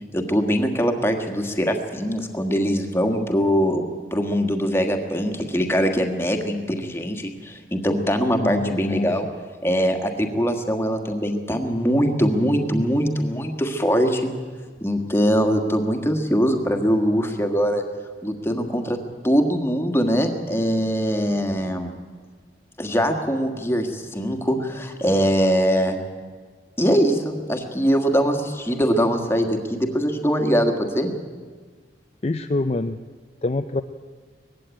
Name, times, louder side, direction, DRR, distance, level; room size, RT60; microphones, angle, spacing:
voice 1, 0.1-3.8 4.1-9.3 9.6-14.3 14.8-17.8 18.2-19.0 19.2-21.9 22.8-26.0 26.8-31.1, equal, 15° left, 5 dB, 1.6 m, -22 dB
voice 2, 8.4-9.1 32.2-33.0 33.4-33.8, left 2 dB, 35° left, 7 dB, 0.5 m, -25 dB
19.5 x 15.5 x 9.0 m, 1.5 s
head